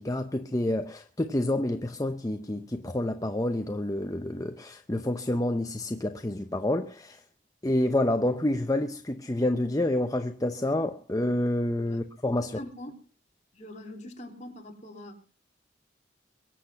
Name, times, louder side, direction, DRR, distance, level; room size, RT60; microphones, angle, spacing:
voice 1, 0.0-7.2 7.6-12.6, left 1 dB, 20° left, 0.7 m, -28 dB
voice 2, 12.5-12.9 13.5-15.1, left 1 dB, 35° left, 3.3 m, -43 dB
23.0 x 8.3 x 5.7 m
head